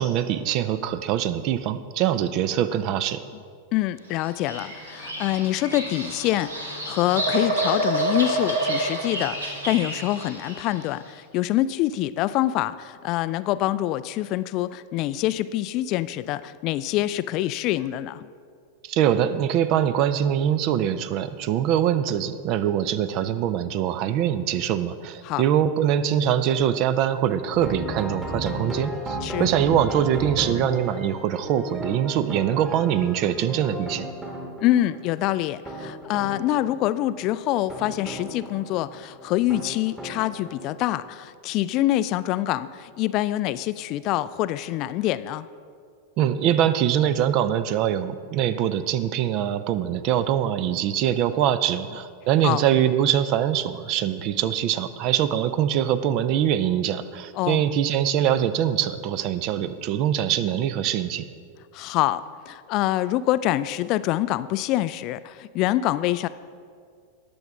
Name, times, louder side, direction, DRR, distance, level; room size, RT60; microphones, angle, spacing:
voice 1, 0.0-3.2 18.8-34.1 46.2-61.2, right 10 dB, 40° right, 13 dB, 0.5 m, -23 dB
voice 2, 3.7-18.3 25.2-25.4 29.2-29.5 34.6-45.5 52.4-52.6 57.3-57.6 61.7-66.3, left 14 dB, 40° left, 15 dB, 0.3 m, -25 dB
Bird vocalization bird call bird song, 4.2-10.8, right 1 dB, 75° right, 1.8 m, -28 dB
sound 1, 27.5-41.1, equal, 15° right, 1.6 m, -35 dB
19.5 x 6.9 x 3.6 m, 2.2 s
figure-of-eight pair, 90°, 0 cm